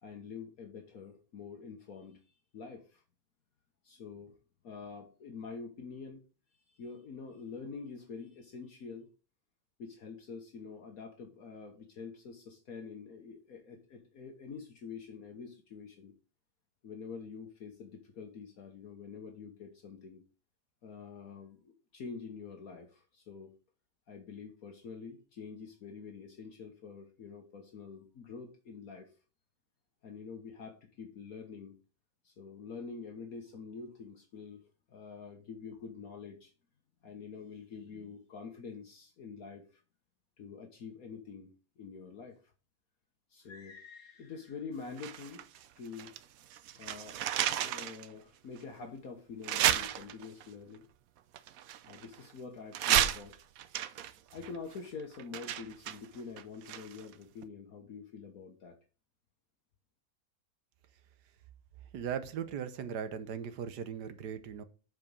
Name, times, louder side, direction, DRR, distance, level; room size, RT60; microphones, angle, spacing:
voice 1, 0.0-2.2 2.5-3.0 3.8-4.3 4.6-6.2 6.7-9.1 9.8-16.1 16.8-20.2 20.8-23.5 24.1-29.1 30.0-31.8 32.2-36.5 37.0-39.8 40.4-42.4 43.3-45.4 45.8-46.1 46.7-47.2 47.6-50.8 51.9-53.4 54.3-58.8, left 5 dB, 65° left, 1.5 m, -46 dB
sound 1, 45.0-46.2 46.5-48.1 48.6-48.7 49.4-50.5 51.3-52.3 52.7-57.1 57.4-57.5, right 11 dB, 65° right, 1.0 m, -32 dB
voice 2, 61.9-64.6, right 8 dB, 80° right, 1.4 m, -38 dB
7.5 x 4.9 x 5.4 m
omnidirectional pair, 1.7 m